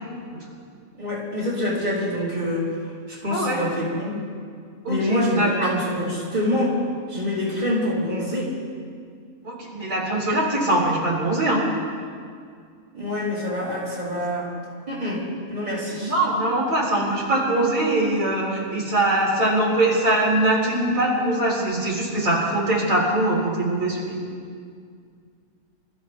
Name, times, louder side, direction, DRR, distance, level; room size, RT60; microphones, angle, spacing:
voice 1, 0.9-2.7 3.1-4.2 4.9-6.8 7.1-8.5 12.9-14.5 14.9-15.2 15.5-16.1, left 1 dB, 30° right, -7 dB, 4.0 m, -26 dB
voice 2, 3.3-3.6 4.8-5.7 9.4-11.7 15.9-24.2, right 1 dB, 70° right, -4 dB, 4.1 m, -22 dB
28.0 x 14.5 x 3.5 m, 2.2 s
omnidirectional pair, 1.5 m